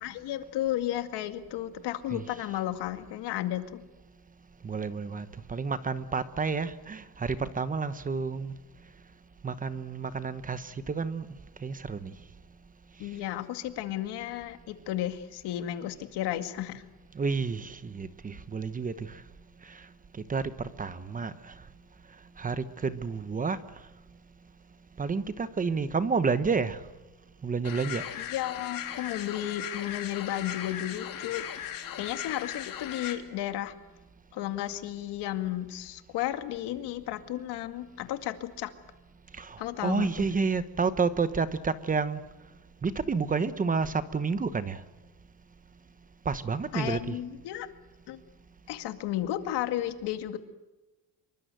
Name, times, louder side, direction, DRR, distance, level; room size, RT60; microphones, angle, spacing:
voice 1, 0.0-3.8 13.0-16.8 28.2-31.5 32.0-33.7 34.3-38.7 39.6-40.3 46.7-47.7 48.1-48.2 48.7-50.4, left 13 dB, 80° left, 2.3 m, -33 dB
voice 2, 4.6-8.5 9.4-11.2 11.6-12.1 17.1-19.1 20.3-21.5 22.4-23.6 25.0-26.8 27.4-28.0 39.4-42.2 42.8-44.8 46.2-47.2, right 5 dB, 20° right, 1.0 m, -30 dB
sound 1, 27.6-33.1, left 10 dB, 55° left, 3.5 m, -38 dB
26.5 x 23.5 x 7.8 m
cardioid pair, 170°, 39 cm